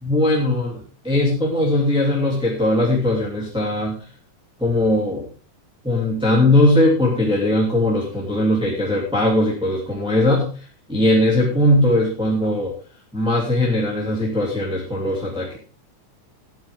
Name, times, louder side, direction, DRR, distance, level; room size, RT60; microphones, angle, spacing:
voice 1, 0.0-3.9 4.6-5.3 5.8-10.5 10.9-12.7 13.1-15.6, left 1 dB, ahead, -6 dB, 2.8 m, -19 dB
13.5 x 10.5 x 3.7 m, 0.39 s
omnidirectional pair, 3.5 m